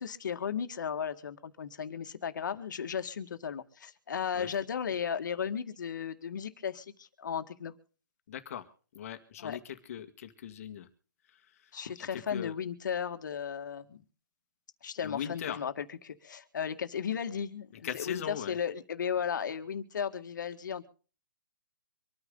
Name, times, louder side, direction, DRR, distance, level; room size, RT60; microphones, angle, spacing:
voice 1, 0.0-7.7 9.4-9.6 11.7-14.0 14.8-20.9, left 7 dB, 70° left, 8 dB, 1.9 m, -35 dB
voice 2, 8.3-8.7 8.9-10.9 12.0-12.5 15.0-15.6 17.8-18.6, left 9 dB, 45° left, 8 dB, 1.8 m, -39 dB
25.5 x 9.7 x 3.9 m, 0.39 s
hypercardioid pair, 160°, 11 cm